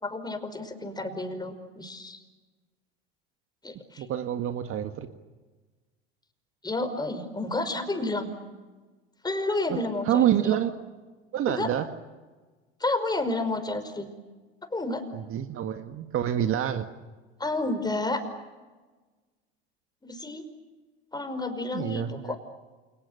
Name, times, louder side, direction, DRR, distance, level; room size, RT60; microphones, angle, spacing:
voice 1, 0.0-2.2 3.6-4.1 6.6-8.3 9.2-10.6 11.5-11.7 12.8-14.1 14.7-15.0 17.4-18.2 20.0-20.4 21.1-22.4, left 2 dB, 15° left, 8 dB, 5.4 m, -30 dB
voice 2, 4.0-5.1 9.7-9.8 10.1-10.7 11.3-11.9 15.1-16.9 21.7-22.4, right 10 dB, 45° right, 8 dB, 1.7 m, -27 dB
30.0 x 28.5 x 6.8 m, 1.3 s
hypercardioid pair, 75°, 31 cm